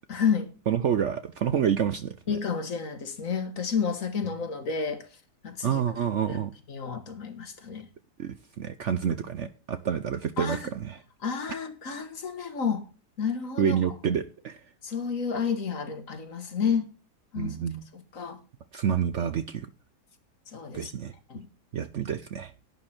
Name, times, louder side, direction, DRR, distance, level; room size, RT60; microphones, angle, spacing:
voice 1, 0.1-0.5 2.3-5.1 5.4-5.8 6.3-6.4 6.7-7.9 10.4-10.7 11.2-12.8 13.2-13.9 14.8-16.9 17.3-17.6 17.9-18.4 20.5-20.9 21.3-21.5, left 6 dB, 55° left, 1.8 m, -30 dB
voice 2, 0.7-2.4 5.6-6.5 8.2-11.0 13.6-14.6 17.4-17.8 18.7-19.7 20.7-21.1 21.7-22.5, right 8 dB, 60° right, 0.8 m, -28 dB
11.0 x 9.7 x 4.4 m
omnidirectional pair, 1.7 m